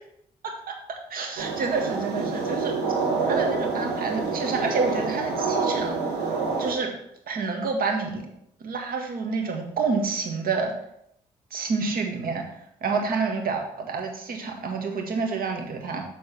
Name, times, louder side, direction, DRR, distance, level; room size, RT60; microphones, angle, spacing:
voice 1, 0.4-0.7 1.1-2.8 3.3-6.0 6.6-6.9 7.3-8.3 8.6-10.7 11.5-12.5 12.8-16.0, right 4 dB, 65° right, 2 dB, 1.8 m, -28 dB
sound 1, 1.4-6.7, right 4 dB, 85° right, 1.7 m, -27 dB
6.9 x 3.9 x 5.9 m, 0.75 s
supercardioid pair, 55°, 16 cm